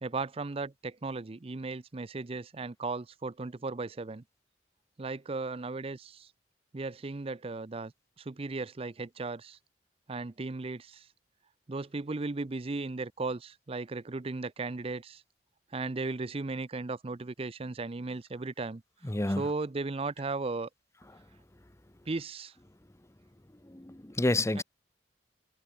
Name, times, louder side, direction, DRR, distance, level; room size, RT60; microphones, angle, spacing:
voice 1, 0.0-4.2 5.0-6.3 6.7-7.9 8.2-9.6 10.1-11.1 11.7-15.2 15.7-18.8 19.4-20.7 22.1-22.5 24.6-24.7, right 3 dB, 35° right, 0.6 m, -36 dB
voice 2, 19.0-19.5 23.6-24.6, left 1 dB, 15° left, 0.9 m, -29 dB
head